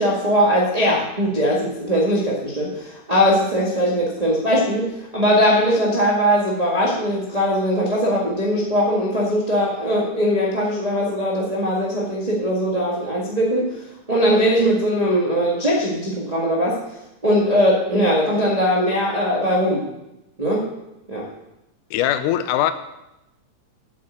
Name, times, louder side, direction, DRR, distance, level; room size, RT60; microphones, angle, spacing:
voice 1, 0.0-16.8 17.2-19.8 20.4-20.7 21.1-21.3, equal, 25° right, -5 dB, 0.8 m, -20 dB
voice 2, 21.9-22.7, left 12 dB, 80° left, 10 dB, 2.1 m, -20 dB
8.6 x 7.6 x 8.1 m, 0.91 s
omnidirectional pair, 3.8 m